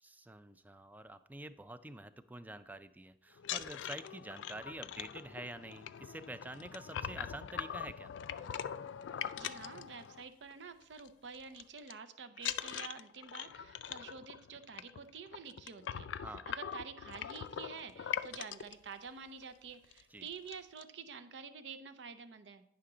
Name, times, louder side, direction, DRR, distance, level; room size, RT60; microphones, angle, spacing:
voice 1, 0.0-8.1 16.2-16.5 20.1-20.3, right 1 dB, 10° right, 12 dB, 0.3 m, -48 dB
sound 1, 3.4-10.5 10.8-11.1 11.3-11.9 12.4-18.7 19.4-19.5 19.8-20.0 20.3-20.8, left 9 dB, 85° left, 0.3 m, -42 dB
voice 2, 9.4-22.6, right 5 dB, 75° right, 10 dB, 0.6 m, -49 dB
9.6 x 5.8 x 3.8 m, 0.73 s
head